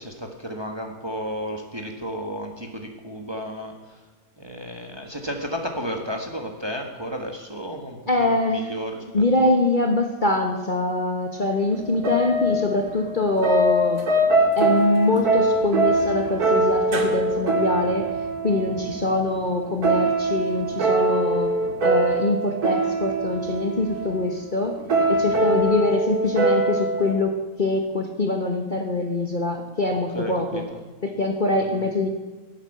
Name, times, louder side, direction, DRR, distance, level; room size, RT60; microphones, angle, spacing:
voice 1, 0.0-3.7 4.4-9.5 30.1-30.8 31.7-31.8, equal, 15° right, 3 dB, 1.6 m, -33 dB
voice 2, 8.1-8.7 9.1-14.1 14.6-18.2 18.4-21.5 21.8-24.8 25.1-30.6 31.0-32.1, left 2 dB, 35° left, 3 dB, 1.4 m, -24 dB
sound 1, 11.7-27.1, right 2 dB, 75° right, 2.3 m, -23 dB
17.0 x 8.9 x 7.8 m, 1.3 s
omnidirectional pair, 1.7 m